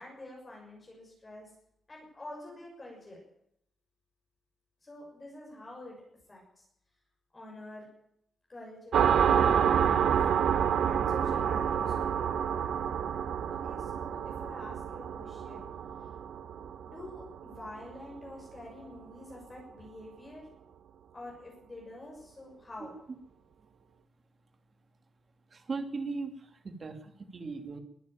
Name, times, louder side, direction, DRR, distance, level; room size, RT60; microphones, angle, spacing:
voice 1, 0.0-1.5 1.9-3.2 4.8-6.0 6.3-6.7 7.3-7.9 8.5-10.2 10.8-12.2 13.6-15.6 16.8-20.5 21.1-23.0, left 1 dB, 20° left, -2 dB, 6.7 m, -47 dB
sound 1, 8.9-18.2, right 8 dB, 75° right, 1.5 m, -28 dB
voice 2, 25.5-27.8, right 4 dB, 35° right, 7 dB, 2.8 m, -38 dB
22.5 x 13.0 x 9.1 m, 0.75 s
wide cardioid pair, 170°, 0 cm